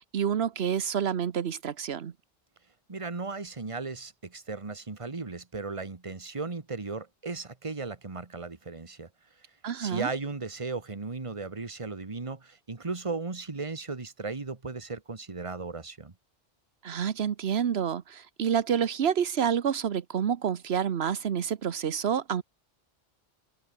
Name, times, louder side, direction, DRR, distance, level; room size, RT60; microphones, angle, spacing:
voice 1, 0.0-2.1 9.6-10.1 16.8-22.4, right 8 dB, 80° right, 1.2 m, -28 dB
voice 2, 2.9-9.1 9.8-16.1, right 4 dB, 30° right, 1.6 m, -36 dB
omnidirectional pair, 1.1 m